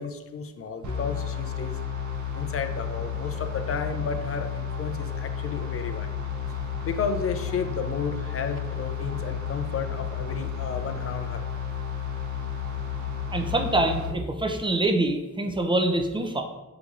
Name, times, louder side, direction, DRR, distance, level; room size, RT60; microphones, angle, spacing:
voice 1, 0.0-1.8 2.3-6.1 6.8-11.5, left 5 dB, 45° left, 8 dB, 0.4 m, -32 dB
sound 1, 0.8-14.1, left 7 dB, 60° right, 0.7 m, -32 dB
voice 2, 13.3-16.4, right 2 dB, 15° right, 4 dB, 0.5 m, -25 dB
5.1 x 2.9 x 2.4 m, 1.1 s
cardioid pair, 75°, 33 cm